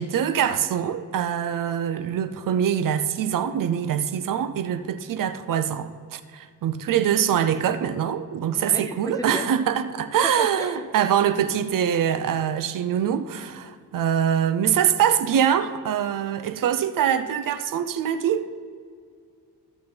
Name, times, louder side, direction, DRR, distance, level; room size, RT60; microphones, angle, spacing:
voice 1, 0.0-18.5, right 9 dB, 55° right, 0.5 m, -24 dB
voice 2, 8.6-9.5 10.4-10.8, left 1 dB, 10° left, 0.3 m, -34 dB
14.0 x 6.8 x 4.0 m
wide cardioid pair, 175°, 40 cm